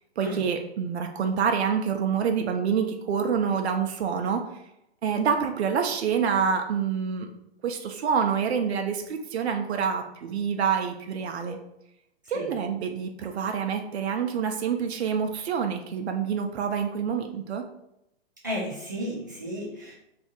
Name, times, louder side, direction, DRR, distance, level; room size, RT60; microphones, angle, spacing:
voice 1, 0.2-4.5 5.0-7.3 7.6-11.6 12.3-17.7, right 7 dB, 85° right, 5 dB, 0.5 m, -27 dB
voice 2, 18.4-20.0, equal, 20° right, -6 dB, 0.4 m, -33 dB
2.7 x 2.4 x 3.9 m, 0.82 s
hypercardioid pair, 180°, 32 cm